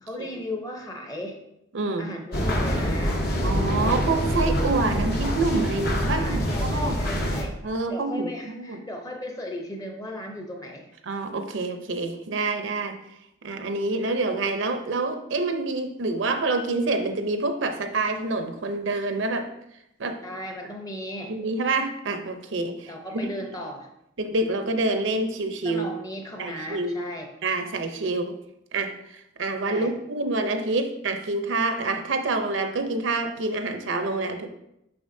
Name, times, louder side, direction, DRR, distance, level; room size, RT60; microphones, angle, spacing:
voice 1, 0.0-1.4 2.0-3.2 6.1-7.6 7.9-10.9 20.2-21.3 22.9-23.9 25.6-27.3 29.7-29.9, left 1 dB, 20° left, 2 dB, 0.8 m, -36 dB
voice 2, 1.7-2.1 3.4-6.4 6.7-7.0 7.6-8.3 8.6-8.8 11.0-13.0 13.4-19.5 20.0-20.2 21.3-23.3 24.2-25.9 26.4-27.0 27.4-28.4 28.7-34.5, right 3 dB, 70° right, 7 dB, 0.6 m, -27 dB
sound 1, 2.3-7.4, equal, 55° left, 1.0 m, -25 dB
6.9 x 5.8 x 2.7 m, 0.81 s
head